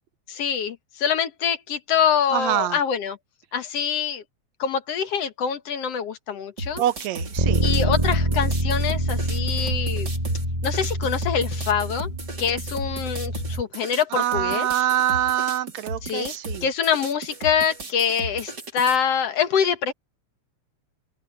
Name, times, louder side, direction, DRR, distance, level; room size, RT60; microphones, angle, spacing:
voice 1, 0.3-3.2 3.5-4.2 4.6-6.8 7.6-10.1 10.6-12.1 12.4-14.7 16.0-16.3 16.6-19.9, left 7 dB, 60° left, 2.2 m, -25 dB
voice 2, 2.3-2.8 6.8-7.6 14.1-16.6, right 13 dB, 75° right, 1.8 m, -24 dB
sound 1, 6.6-19.0, right 2 dB, 35° right, 4.1 m, -35 dB
Bass guitar, 7.4-13.6, right 1 dB, 15° right, 2.5 m, -25 dB
open air
omnidirectional pair, 3.3 m